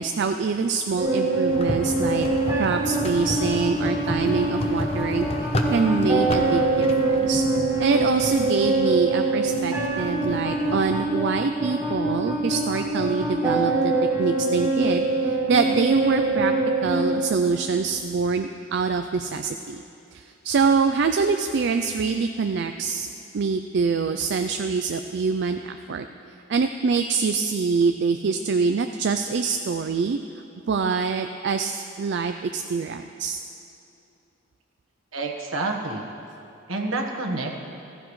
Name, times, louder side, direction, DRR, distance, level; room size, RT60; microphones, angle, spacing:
voice 1, 0.0-2.3 2.5-5.3 5.7-6.9 7.1-7.4 7.8-13.9 14.2-16.5 16.8-19.8 20.1-23.1 23.3-26.1 26.5-30.2 30.7-33.4, right 5 dB, 55° right, 7 dB, 0.4 m, -25 dB
sound 1, 1.0-18.0, right 2 dB, 15° right, 1.6 m, -24 dB
sound 2, 1.5-11.0, left 1 dB, 30° left, 0.8 m, -33 dB
voice 2, 35.1-36.1 36.7-37.6, right 2 dB, 75° right, 2 dB, 1.3 m, -28 dB
15.0 x 15.0 x 3.2 m, 2.7 s
head